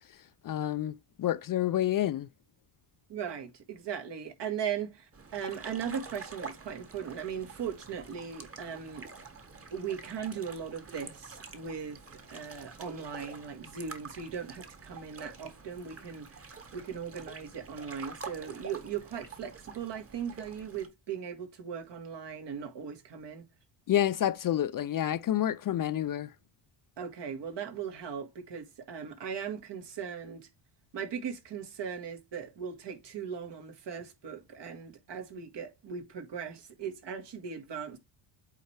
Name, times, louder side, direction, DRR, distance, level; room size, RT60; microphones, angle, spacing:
voice 1, 0.4-2.3 23.9-26.3, left 12 dB, 45° left, 0.5 m, -29 dB
voice 2, 3.1-9.1 9.7-12.0 12.3-23.4 27.0-30.5 30.9-38.0, right 7 dB, 55° right, 1.8 m, -38 dB
sound 1, 5.1-20.9, right 4 dB, 25° right, 1.5 m, -47 dB
8.1 x 4.3 x 3.3 m
cardioid pair, 100°, 50 cm